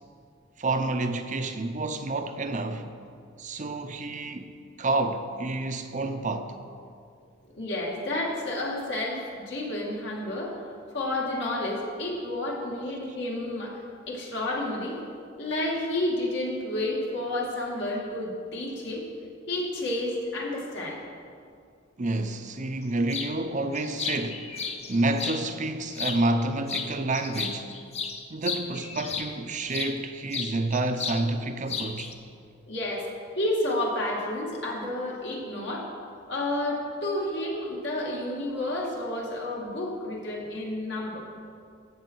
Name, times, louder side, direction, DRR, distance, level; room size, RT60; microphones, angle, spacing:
voice 1, 0.6-2.9 3.4-4.5 4.8-6.6 22.0-27.7 28.3-32.1, right 2 dB, 40° right, 0.7 m, -29 dB
voice 2, 7.6-10.6 10.9-13.8 14.1-15.0 15.4-19.1 19.5-21.0 32.7-33.1 33.4-35.9 36.3-41.2, left 1 dB, 65° left, 2.4 m, -30 dB
sound 1, 23.1-23.3 23.7-25.4 25.9-26.4 26.7-29.9 30.3-31.2 31.5-32.1, left 5 dB, 35° left, 0.8 m, -33 dB
15.0 x 7.7 x 4.7 m
head